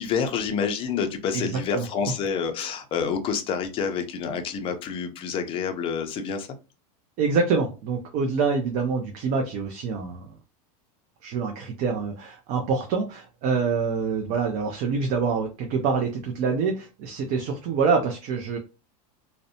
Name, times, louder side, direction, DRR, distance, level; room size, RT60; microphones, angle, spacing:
voice 1, 0.0-6.5, left 6 dB, 30° left, 7 dB, 0.4 m, -28 dB
voice 2, 1.3-1.8 7.2-10.3 11.2-18.6, right 5 dB, 40° right, 3 dB, 0.5 m, -26 dB
2.6 x 2.1 x 2.6 m, 0.30 s
supercardioid pair, 145°, 20 cm